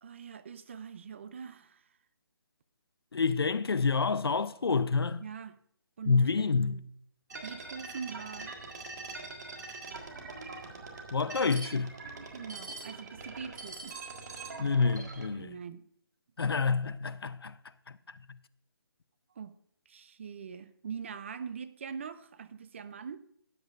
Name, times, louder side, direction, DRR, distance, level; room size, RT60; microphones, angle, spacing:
voice 1, 0.0-1.8 5.2-5.6 6.0-6.8 7.4-8.5 10.0-10.5 10.9-11.0 12.3-14.0 15.3-15.8 19.4-19.5 19.9-23.2, right 6 dB, 30° right, 0.5 m, -43 dB
voice 2, 3.1-5.2 6.1-6.8 11.1-11.9 14.6-15.5 16.4-17.5, left 4 dB, 85° left, 0.6 m, -28 dB
sound 1, 7.3-15.3, right 3 dB, 45° right, 1.6 m, -43 dB
13.5 x 9.4 x 2.5 m
hypercardioid pair, 165°, 12 cm